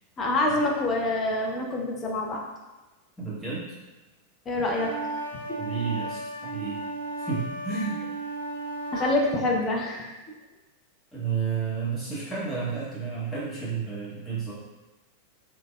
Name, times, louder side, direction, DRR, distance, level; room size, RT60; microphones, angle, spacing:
voice 1, 0.2-2.4 4.5-4.9 8.9-10.1, left 2 dB, 25° left, 0 dB, 0.5 m, -26 dB
voice 2, 3.2-3.7 5.6-6.8 7.2-8.0 11.1-14.5, right 5 dB, 5° left, -11 dB, 1.2 m, -31 dB
sound 1, 4.7-9.2, right 2 dB, 85° right, 0.3 m, -34 dB
3.2 x 2.1 x 2.2 m, 1.1 s
figure-of-eight pair, 90°, 0 cm